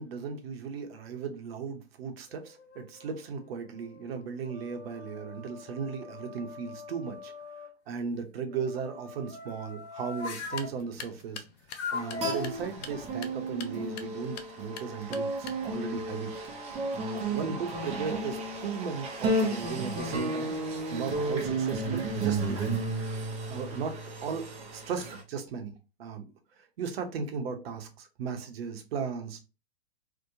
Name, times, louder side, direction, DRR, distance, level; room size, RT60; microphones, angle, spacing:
voice 1, 0.0-7.3 7.9-11.4 11.9-16.3 16.9-20.5 20.9-22.8 23.5-25.7 26.0-26.2 26.5-29.4, right 6 dB, 65° right, 0.7 m, -36 dB
sound 1, 2.3-3.2 3.8-7.7 8.5-10.7 11.7-12.3, left 5 dB, 85° left, 0.7 m, -41 dB
sound 2, 10.4-15.9, left 7 dB, 40° left, 0.4 m, -47 dB
sound 3, 11.9-25.2, right 2 dB, 20° right, 0.5 m, -33 dB
2.7 x 2.1 x 2.5 m
hypercardioid pair, 115°, 33 cm